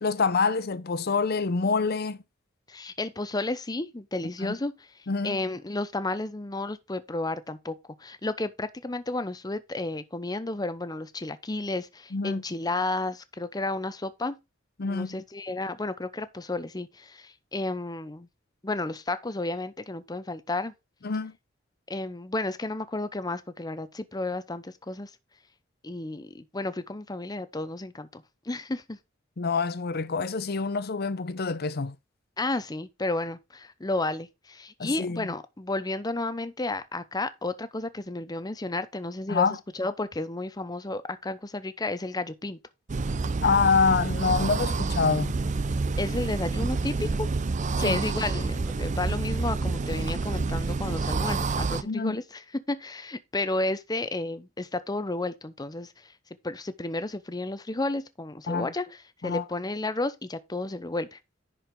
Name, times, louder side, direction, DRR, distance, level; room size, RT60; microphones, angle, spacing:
voice 1, 0.0-2.2 4.4-4.6 5.1-5.4 12.1-12.4 14.8-15.2 21.0-21.3 29.4-32.0 34.8-35.3 39.3-39.6 43.4-45.3 47.8-48.0 51.8-52.2 58.5-58.7 59.2-59.4, left 4 dB, 55° left, 0.7 m, -26 dB
voice 2, 2.7-4.7 5.2-14.4 14.8-18.3 18.6-20.7 21.9-25.1 25.8-29.0 32.4-39.5 39.7-42.6 46.0-47.3 47.8-55.9 56.4-61.2, left 2 dB, 20° left, 0.7 m, -32 dB
sound 1, 42.9-51.8, right 3 dB, 40° right, 0.5 m, -28 dB
10.5 x 4.9 x 3.7 m
head